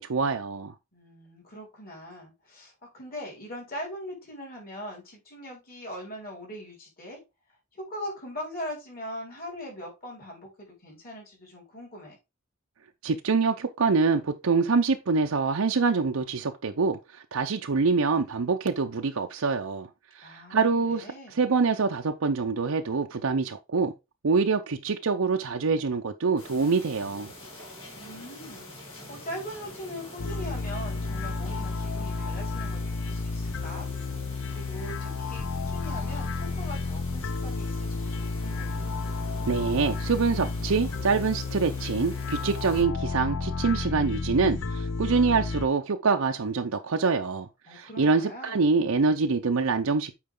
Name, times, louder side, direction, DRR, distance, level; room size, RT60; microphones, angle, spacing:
voice 1, 0.0-0.7 13.0-19.9 20.1-21.1 21.3-23.9 24.2-27.3 39.5-50.1, right 4 dB, 80° right, 0.6 m, -25 dB
voice 2, 0.9-7.2 7.7-12.2 20.2-21.5 27.9-33.9 34.5-38.8 47.7-48.7, equal, 45° left, 4.6 m, -41 dB
sound 1, 26.4-42.8, left 1 dB, 25° left, 3.1 m, -45 dB
sound 2, 30.2-45.7, left 3 dB, 60° left, 0.6 m, -32 dB
8.7 x 4.8 x 3.7 m
head